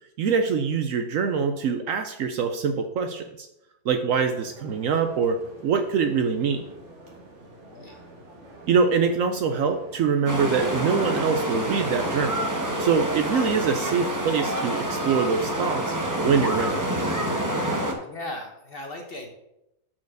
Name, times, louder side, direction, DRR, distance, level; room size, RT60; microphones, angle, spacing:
voice 1, 0.2-3.5 3.8-5.4 5.6-6.6 8.7-12.4 12.8-15.9 16.2-16.8, right 6 dB, 70° right, 7 dB, 0.8 m, -24 dB
sound 1, 4.1-15.7, right 1 dB, 50° right, 1.6 m, -47 dB
voice 2, 7.6-8.0 18.0-19.3, left 1 dB, 50° left, 3 dB, 0.8 m, -37 dB
sound 2, 10.3-17.9, right 1 dB, 20° right, 0.5 m, -27 dB
5.7 x 4.5 x 6.4 m, 0.87 s
omnidirectional pair, 1.7 m